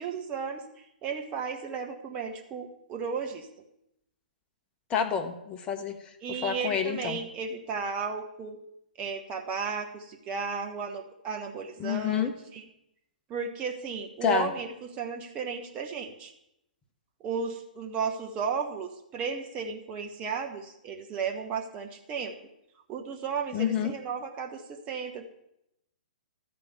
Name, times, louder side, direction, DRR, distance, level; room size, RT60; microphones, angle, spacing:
voice 1, 0.0-3.5 6.2-8.6 9.0-12.7 13.3-16.3 17.2-22.3 22.9-25.3, right 5 dB, 25° right, 3 dB, 1.1 m, -34 dB
voice 2, 4.9-5.9 6.3-7.2 11.8-12.3 14.2-14.5 23.5-23.9, left 8 dB, 20° left, 5 dB, 1.1 m, -28 dB
12.5 x 5.2 x 7.2 m, 0.80 s
figure-of-eight pair, 120°, 5 cm